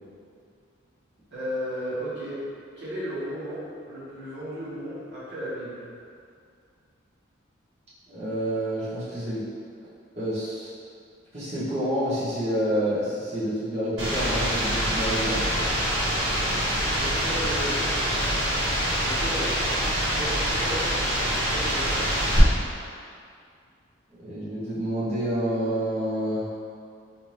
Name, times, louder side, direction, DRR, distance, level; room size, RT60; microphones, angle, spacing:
voice 1, 1.3-2.4 2.8-5.9 16.9-17.8 19.0-19.6 20.0-20.8 21.4-22.0, equal, 60° right, -11 dB, 1.5 m, -34 dB
voice 2, 8.1-9.4 10.2-10.7 11.3-15.6 24.2-26.5, equal, 35° right, -12 dB, 1.2 m, -28 dB
sound 1, 14.0-22.4, equal, 80° right, 1.4 m, -25 dB
3.4 x 2.8 x 3.1 m, 2.3 s
head